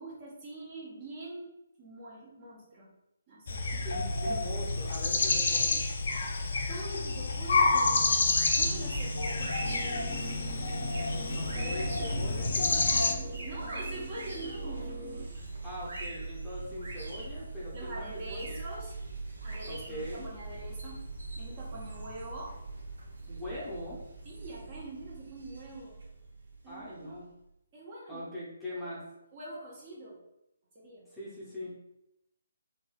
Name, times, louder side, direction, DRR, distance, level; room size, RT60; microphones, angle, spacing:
voice 1, 0.0-2.9 3.3-3.7 6.3-10.3 13.4-14.9 17.7-19.0 19.4-21.0 21.4-22.6 24.2-26.0 26.6-27.2 27.7-28.4 28.7-29.0 29.3-30.2 30.7-31.1, right 1 dB, 30° right, -5 dB, 0.9 m, -44 dB
sound 1, 3.5-13.1, left 3 dB, 50° left, 0.4 m, -29 dB
voice 2, 3.7-5.8 11.3-12.9 15.6-18.6 19.7-20.3 23.3-24.0 26.7-27.3 28.1-29.0 31.1-31.8, left 1 dB, 5° left, -10 dB, 0.8 m, -41 dB
sound 2, 7.8-27.2, right 3 dB, 60° right, 0.7 m, -41 dB
sound 3, 9.6-15.2, right 2 dB, 10° right, 1.3 m, -45 dB
3.1 x 2.7 x 2.3 m, 0.86 s
figure-of-eight pair, 140°, 0 cm